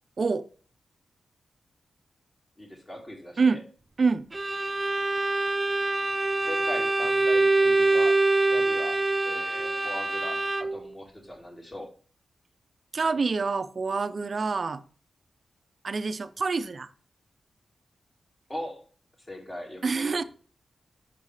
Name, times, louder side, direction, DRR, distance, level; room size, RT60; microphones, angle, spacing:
voice 1, 0.2-0.5 3.4-3.6 4.0-4.3 12.9-14.8 15.8-16.9 19.8-20.2, right 4 dB, 50° right, 12 dB, 0.7 m, -26 dB
voice 2, 2.6-3.6 6.4-11.9 18.5-18.8 19.3-20.2, left 1 dB, 25° left, -1 dB, 3.4 m, -40 dB
Bowed string instrument, 4.3-10.9, right 2 dB, 20° right, 0.3 m, -25 dB
6.8 x 5.5 x 4.9 m, 0.41 s
cardioid pair, 80°, 0 cm